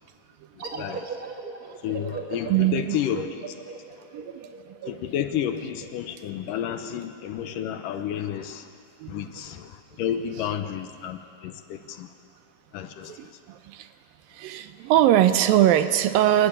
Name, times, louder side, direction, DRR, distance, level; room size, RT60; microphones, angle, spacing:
sound 1, 0.6-5.9, right 4 dB, 40° right, 1.3 m, -38 dB
voice 1, 0.7-1.1 1.7-1.8 2.5-3.0 4.1-4.5 4.8-5.0 9.0-9.4 10.2-10.4 13.1-13.9 14.3-16.5, right 12 dB, 80° right, 11 dB, 2.4 m, -22 dB
voice 2, 1.8-3.3 4.9-8.7 9.1-12.1 12.7-13.1, left 10 dB, 75° left, 8 dB, 2.2 m, -31 dB
27.0 x 13.0 x 9.8 m, 2.3 s
omnidirectional pair, 4.2 m